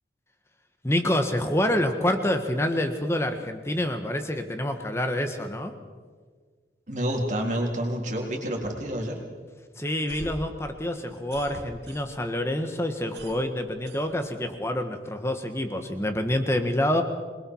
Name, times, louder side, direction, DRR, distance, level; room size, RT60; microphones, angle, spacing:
voice 1, 0.8-5.7 9.8-17.0, left 1 dB, 15° left, 6 dB, 1.6 m, -27 dB
voice 2, 6.9-9.2, equal, 45° right, 0 dB, 3.7 m, -28 dB
sound 1, 9.9-12.4 12.7-14.6, right 1 dB, 85° right, 2.4 m, -44 dB
27.0 x 21.0 x 4.7 m, 1.5 s
head